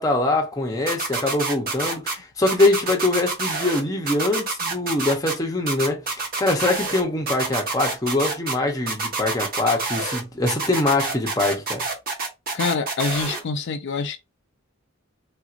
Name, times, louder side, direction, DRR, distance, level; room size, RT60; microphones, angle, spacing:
voice 1, 0.0-6.0 6.4-11.8, left 2 dB, 15° left, 0.7 m, -23 dB
sound 1, 0.9-2.1 2.5-3.8 4.1-5.3 5.7-7.0 7.3-8.5 8.9-10.2 10.5-13.4, right 4 dB, 45° right, 1.0 m, -27 dB
voice 2, 12.5-14.2, left 4 dB, 55° left, 0.4 m, -26 dB
3.5 x 2.8 x 2.5 m
head